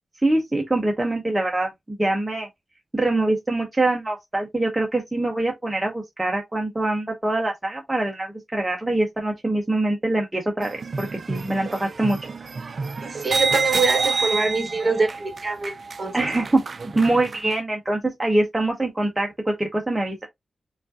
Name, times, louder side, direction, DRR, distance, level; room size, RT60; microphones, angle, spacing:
voice 1, 0.2-2.5 2.9-12.2 16.1-16.6 17.0-20.2, right 2 dB, 10° right, 0.7 m, -24 dB
sound 1, 10.6-17.5, right 4 dB, 45° right, 0.3 m, -28 dB
voice 2, 13.0-16.2, right 4 dB, 30° right, 1.2 m, -24 dB
4.9 x 2.4 x 2.6 m
wide cardioid pair, 140°, 0 cm